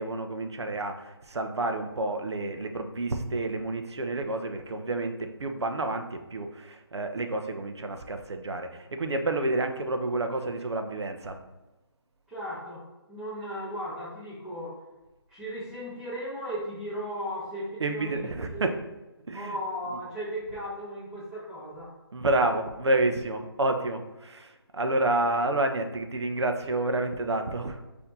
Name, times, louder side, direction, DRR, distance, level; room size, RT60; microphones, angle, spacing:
voice 1, 0.0-11.4 17.8-18.8 19.3-19.6 19.9-20.0 22.1-27.8, right 2 dB, 80° right, 6 dB, 0.6 m, -29 dB
voice 2, 12.3-14.9 15.3-18.7 19.3-21.9, equal, 5° right, -9 dB, 0.7 m, -36 dB
4.2 x 2.8 x 4.0 m, 1.1 s
figure-of-eight pair, 160°, 14 cm